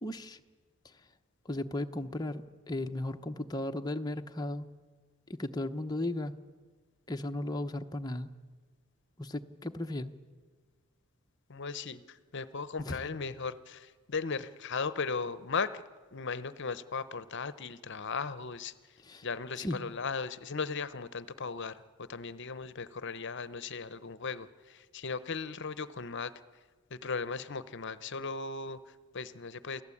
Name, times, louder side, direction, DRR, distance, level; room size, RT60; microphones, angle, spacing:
voice 1, 0.0-0.4 1.4-4.7 5.4-6.3 7.1-8.3 9.2-10.1 12.9-13.0 19.1-19.3 19.6-19.8, left 1 dB, 20° left, 5 dB, 0.9 m, -35 dB
voice 2, 11.5-15.8 16.1-26.3 26.9-29.8, left 5 dB, 55° left, 15 dB, 0.8 m, -37 dB
28.5 x 17.0 x 8.5 m, 1.5 s
head